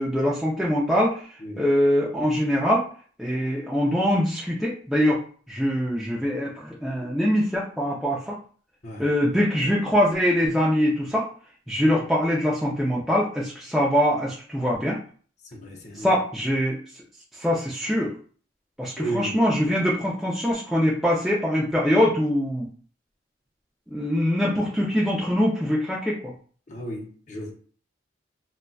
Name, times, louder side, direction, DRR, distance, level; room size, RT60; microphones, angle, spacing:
voice 1, 0.0-1.2 1.6-2.9 3.2-5.2 5.5-8.4 9.0-11.2 11.7-15.0 16.0-16.8 17.4-18.1 18.8-22.7 23.9-26.3, equal, ahead, 0.4 m, -23 dB
voice 2, 8.8-9.2 11.8-12.1 15.5-16.1 19.0-19.4 26.7-27.5, right 1 dB, 40° left, 0.6 m, -34 dB
3.8 x 2.2 x 2.3 m
head